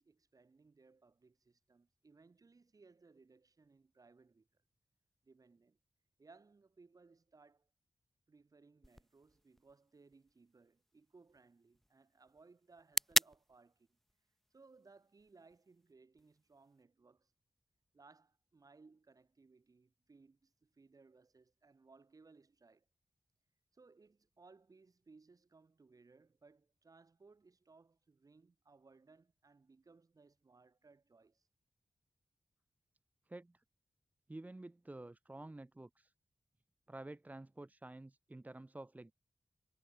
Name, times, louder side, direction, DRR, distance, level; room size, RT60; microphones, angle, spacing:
voice 1, 0.0-4.5 5.2-5.8 6.2-7.7 8.3-14.0 14.5-17.3 17.9-22.9 23.7-31.5, right 4 dB, 45° right, 7.0 m, -64 dB
sound 1, 8.8-16.8, equal, 5° left, 0.9 m, -42 dB
voice 2, 33.3-33.6 34.3-36.1 36.9-39.1, right 2 dB, 20° right, 1.3 m, -50 dB
wide cardioid pair, 145°, 9 cm